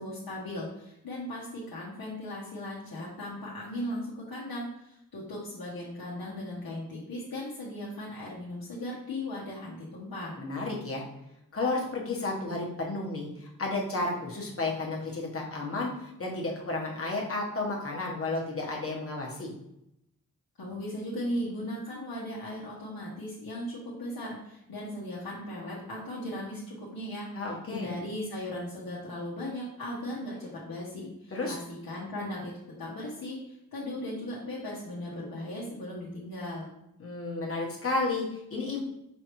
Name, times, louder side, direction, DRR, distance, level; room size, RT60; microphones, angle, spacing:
voice 1, 0.0-10.3 20.6-27.3 27.7-32.5 32.8-36.7, left 1 dB, 75° left, -6 dB, 1.0 m, -37 dB
voice 2, 10.4-11.0 11.5-19.5 27.3-27.9 31.3-31.5 37.0-38.8, left 2 dB, 40° left, -2 dB, 1.1 m, -32 dB
5.4 x 3.3 x 3.0 m, 0.83 s
wide cardioid pair, 125°, 35 cm